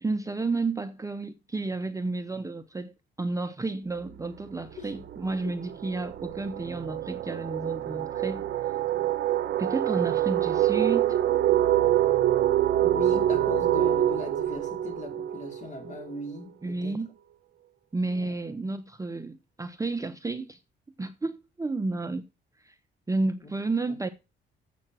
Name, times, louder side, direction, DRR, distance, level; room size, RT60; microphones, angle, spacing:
voice 1, 0.0-2.9 3.2-8.5 9.6-11.2 16.6-17.1 17.9-20.6 21.0-22.3 22.6-22.7 23.1-24.1, right 3 dB, 15° right, 0.7 m, -31 dB
sound 1, 4.0-4.3 4.6-16.2, right 12 dB, 60° right, 1.1 m, -26 dB
voice 2, 12.8-17.0 18.1-18.3, left 3 dB, 40° left, 3.0 m, -38 dB
7.7 x 6.2 x 6.0 m
cardioid pair, 90°, 20 cm